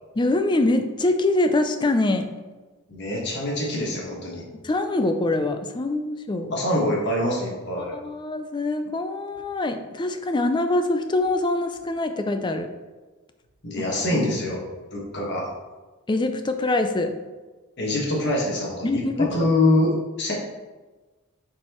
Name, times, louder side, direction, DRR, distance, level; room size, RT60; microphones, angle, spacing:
voice 1, 0.2-2.3 4.6-6.5 7.8-12.7 14.1-14.2 16.1-17.1 18.8-19.3, left 2 dB, 20° left, 7 dB, 0.4 m, -24 dB
voice 2, 2.9-4.4 6.5-7.9 13.6-14.6 14.9-15.5 17.8-20.3, left 1 dB, 50° left, -3 dB, 1.6 m, -24 dB
7.4 x 4.5 x 3.1 m, 1.2 s
head